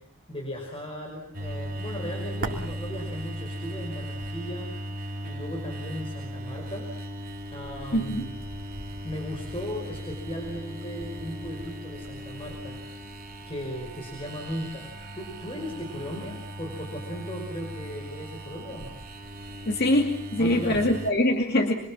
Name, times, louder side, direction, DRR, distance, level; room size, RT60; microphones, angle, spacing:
voice 1, 0.3-4.7 5.2-6.9 7.1-7.2 7.5-8.3 9.0-12.8 13.5-14.9 15.1-19.0 20.4-20.8, equal, 25° left, 0 dB, 5.5 m, -37 dB
sound 1, 1.3-21.1, equal, 45° right, 3.2 m, -37 dB
voice 2, 7.9-8.3 19.7-21.7, left 1 dB, 50° left, 3 dB, 2.5 m, -23 dB
27.0 x 23.5 x 7.4 m, 0.63 s
head